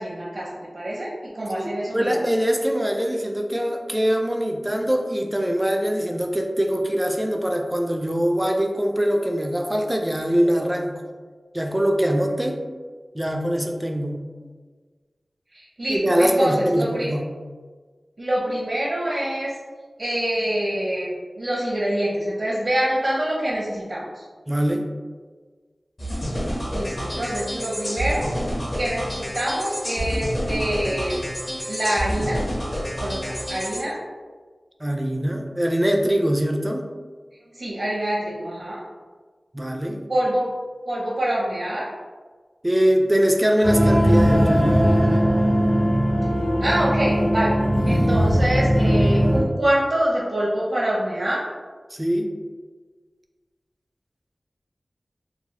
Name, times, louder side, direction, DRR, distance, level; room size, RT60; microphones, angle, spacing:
voice 1, 0.0-2.2 15.5-17.1 18.2-19.5 20.0-24.3 26.7-28.3 28.8-31.2 31.7-32.4 33.0-34.0 37.5-38.8 40.1-40.5 40.9-41.9 46.6-47.6 47.9-51.4, right 1 dB, 70° right, -6 dB, 0.7 m, -25 dB
voice 2, 1.6-10.9 11.5-12.6 13.1-14.2 15.9-17.3 24.5-24.9 34.8-36.9 39.5-40.0 42.6-44.9 51.9-52.3, equal, 15° right, 2 dB, 0.3 m, -23 dB
sound 1, 26.0-33.8, equal, 55° left, 0.8 m, -28 dB
sound 2, 43.6-49.4, equal, 90° right, 1.1 m, -19 dB
3.1 x 2.0 x 2.8 m, 1.4 s
wide cardioid pair, 70°, 0 cm